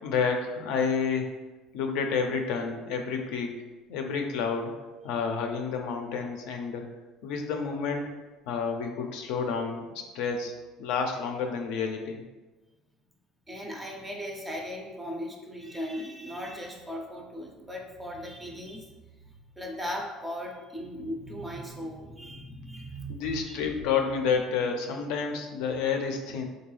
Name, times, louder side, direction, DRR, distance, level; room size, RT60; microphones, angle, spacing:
voice 1, 0.0-1.3 1.7-3.6 3.9-4.7 5.0-6.8 7.2-8.1 8.5-10.5 10.8-12.2 23.1-26.4, left 5 dB, 75° left, 4 dB, 0.4 m, -29 dB
voice 2, 13.5-18.9 19.6-23.6, equal, 5° right, 1 dB, 0.4 m, -38 dB
3.7 x 2.2 x 3.1 m, 1.2 s
cardioid pair, 160°, 0 cm